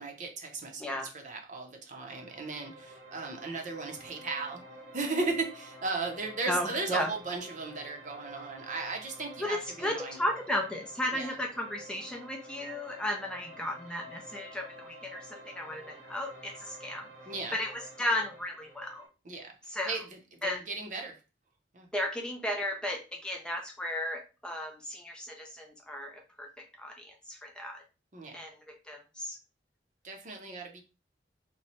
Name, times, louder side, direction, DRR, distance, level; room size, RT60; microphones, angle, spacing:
voice 1, 0.0-4.6 4.9-10.2 11.1-11.4 17.3-17.6 19.2-21.2 21.7-21.9 28.1-28.4 30.0-30.8, right 3 dB, 45° right, 3 dB, 0.7 m, -36 dB
voice 2, 0.8-1.1 6.5-7.1 9.4-17.1 17.5-19.0 19.7-20.0 20.4-20.6 21.9-26.5 26.8-27.8 28.3-28.6 28.9-29.4, left 1 dB, 5° left, 1 dB, 0.4 m, -34 dB
sound 1, 2.1-19.1, right 1 dB, 70° right, 1.2 m, -50 dB
3.0 x 2.2 x 4.1 m, 0.32 s
head